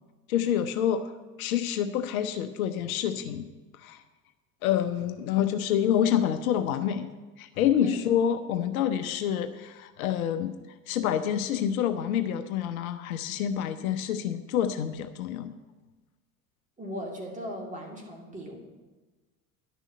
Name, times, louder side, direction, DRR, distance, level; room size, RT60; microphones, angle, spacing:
voice 1, 0.3-1.1 1.4-3.5 3.8-4.0 4.6-7.1 7.4-10.5 10.9-15.6, left 9 dB, 65° left, 10 dB, 0.8 m, -27 dB
voice 2, 16.8-18.6, equal, 15° right, 0 dB, 2.9 m, -37 dB
11.0 x 6.4 x 7.5 m, 1.2 s
figure-of-eight pair, 70°, 46 cm